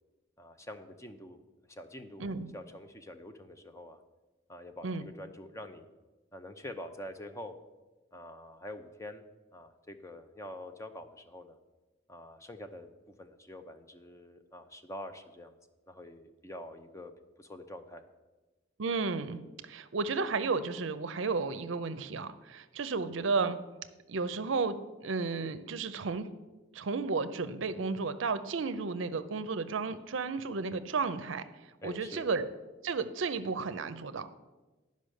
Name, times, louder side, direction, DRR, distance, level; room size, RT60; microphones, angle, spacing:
voice 1, 0.4-1.4 1.7-2.3 2.5-4.0 4.5-5.9 6.3-7.6 8.1-9.2 9.5-11.6 12.1-12.9 13.2-15.6 15.9-17.1 17.4-18.0 31.8-32.3, left 1 dB, 15° left, 7 dB, 0.5 m, -46 dB
voice 2, 18.8-23.6 24.1-26.3 26.7-31.4 31.8-32.5 32.8-34.3, right 4 dB, 65° right, 12 dB, 0.5 m, -33 dB
10.5 x 5.3 x 6.4 m, 1.2 s
head